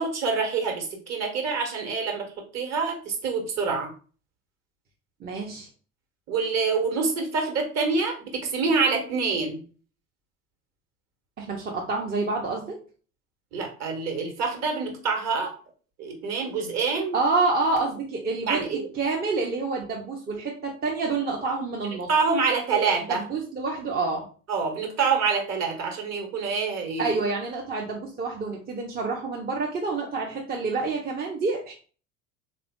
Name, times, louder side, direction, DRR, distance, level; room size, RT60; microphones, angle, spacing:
voice 1, 0.0-3.9 6.3-9.6 13.5-15.5 16.0-17.2 18.5-18.9 21.4-21.6 22.1-23.2 24.5-27.1, right 4 dB, 40° right, 2 dB, 1.3 m, -26 dB
voice 2, 5.2-5.7 11.4-12.8 17.1-18.6 19.0-22.1 23.1-24.2 27.0-31.7, right 3 dB, 25° right, -1 dB, 0.7 m, -28 dB
3.5 x 2.4 x 3.6 m, 0.39 s
figure-of-eight pair, 70°, 40 cm